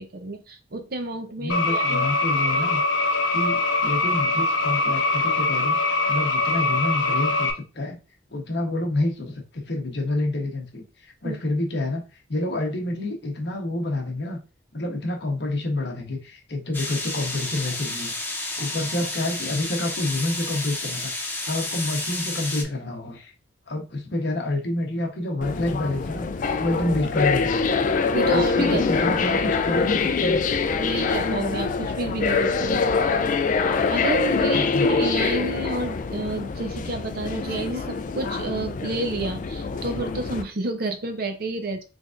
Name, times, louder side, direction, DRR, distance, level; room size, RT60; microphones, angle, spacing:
voice 1, 0.0-2.1 2.5-2.7 11.2-11.4 28.1-29.0 30.8-33.3 33.6-41.8, right 2 dB, 50° right, 7 dB, 0.6 m, -30 dB
voice 2, 1.4-2.8 3.3-7.5 7.7-8.0 8.3-10.8 11.2-12.0 12.3-14.4 14.7-18.1 18.6-21.1 21.4-23.3 23.7-27.7 28.3-30.4 34.5-35.1, left 2 dB, 60° left, 2 dB, 1.0 m, -28 dB
sound 1, 1.5-7.5, left 2 dB, 85° left, 0.7 m, -23 dB
sound 2, 16.7-22.6, left 2 dB, 10° left, 0.7 m, -31 dB
sound 3, 25.4-40.4, left 4 dB, 45° left, 0.3 m, -24 dB
3.8 x 3.4 x 2.5 m, 0.32 s
head